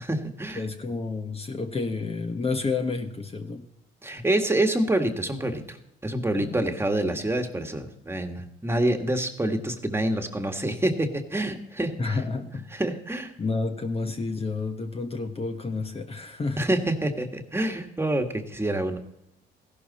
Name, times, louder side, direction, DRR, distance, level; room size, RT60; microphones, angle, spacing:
voice 1, 0.0-0.6 4.0-5.8 6.0-12.2 12.7-13.3 16.6-19.0, right 1 dB, 10° right, 5 dB, 1.7 m, -27 dB
voice 2, 0.5-3.6 6.4-6.6 12.0-12.7 13.4-16.6, left 3 dB, 30° left, 5 dB, 1.2 m, -30 dB
15.5 x 12.0 x 4.2 m, 0.82 s
cardioid pair, 90°, 20 cm